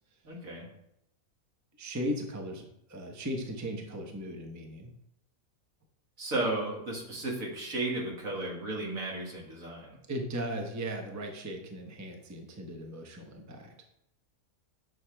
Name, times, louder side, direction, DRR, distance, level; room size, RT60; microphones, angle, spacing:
voice 1, 0.2-0.7 6.2-10.0, right 2 dB, 65° right, -2 dB, 2.3 m, -34 dB
voice 2, 1.8-4.9 10.1-13.7, equal, 15° right, 2 dB, 0.8 m, -37 dB
10.0 x 6.3 x 3.4 m, 0.78 s
omnidirectional pair, 1.6 m